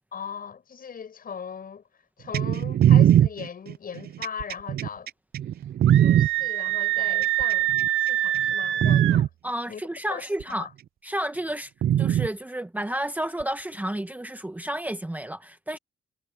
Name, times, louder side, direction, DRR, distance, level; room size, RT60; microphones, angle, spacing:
voice 1, 0.1-1.8 2.2-5.1 5.9-7.7 8.0-9.3 9.7-9.8 10.1-10.2 10.5-10.7, left 7 dB, 45° left, 6.6 m, -38 dB
sound 1, 2.3-6.3 7.2-7.9 8.3-8.5 8.8-9.3 10.4-10.5 11.8-12.3 13.4-13.5, right 10 dB, 50° right, 0.4 m, -20 dB
Screaming, 5.9-9.2, right 14 dB, 80° right, 1.1 m, -25 dB
voice 2, 9.4-10.7 11.0-11.7 12.0-15.8, right 1 dB, 10° right, 1.0 m, -31 dB
cardioid pair, 90°, 20 cm